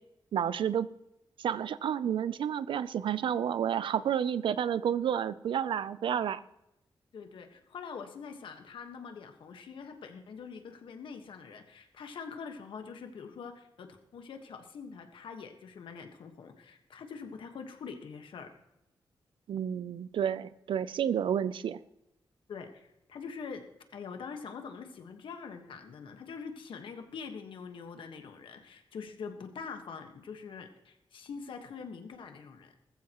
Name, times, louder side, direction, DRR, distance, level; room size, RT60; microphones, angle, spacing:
voice 1, 0.3-0.9 1.4-6.4 19.5-21.8, right 9 dB, 80° right, 16 dB, 0.5 m, -30 dB
voice 2, 7.1-18.5 22.5-23.6 23.9-32.7, left 5 dB, 85° left, 6 dB, 1.4 m, -44 dB
19.5 x 14.5 x 3.0 m, 0.88 s
wide cardioid pair, 145°, 8 cm